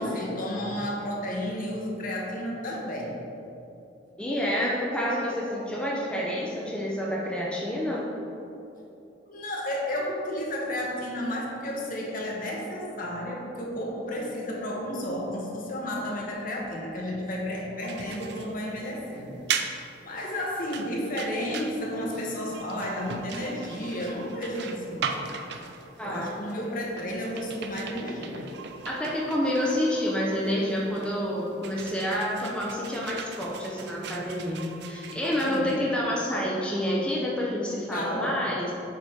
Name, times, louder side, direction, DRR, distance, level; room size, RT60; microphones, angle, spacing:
voice 1, 0.0-3.2 9.3-19.4 20.0-25.2 26.0-28.5 35.5-35.8 37.9-38.5, left 1 dB, 45° left, -2 dB, 1.2 m, -32 dB
voice 2, 4.2-8.1 26.0-26.4 28.9-38.7, equal, 5° left, -5 dB, 0.7 m, -28 dB
sound 1, 17.8-36.2, right 6 dB, 60° right, 0.5 m, -39 dB
8.0 x 4.1 x 4.6 m, 2.9 s
head